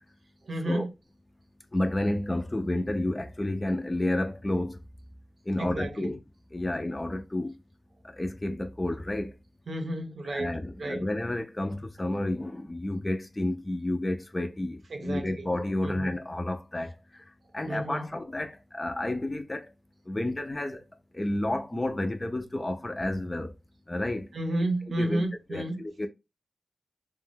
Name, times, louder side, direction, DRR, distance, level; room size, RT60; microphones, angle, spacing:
voice 1, 0.4-0.9 5.6-6.2 9.7-10.5 10.8-11.0 14.9-15.5 15.8-16.1 17.7-18.0 24.3-25.8, right 1 dB, 70° right, 0.7 m, -31 dB
voice 2, 1.7-4.8 5.5-6.2 6.5-7.6 8.0-9.4 10.3-17.3 17.5-19.7 20.1-20.8 21.1-23.5 23.9-24.3 25.0-25.3 25.5-26.1, left 1 dB, 25° left, 0.4 m, -31 dB
2.5 x 2.2 x 3.4 m
cardioid pair, 65°, 0 cm